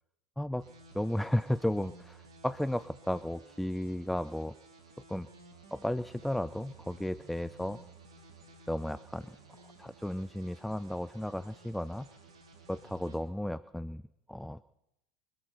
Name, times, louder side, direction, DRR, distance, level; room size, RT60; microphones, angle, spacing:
sound 1, 0.6-13.2, right 3 dB, 75° right, 3.1 m, -55 dB
voice 1, 0.9-4.6 5.1-5.3 5.7-7.8 8.7-9.4 9.8-12.1 12.7-14.0 14.3-14.6, left 1 dB, 5° left, 16 dB, 0.5 m, -34 dB
24.0 x 8.9 x 6.6 m, 0.85 s
hypercardioid pair, 75°, 3 cm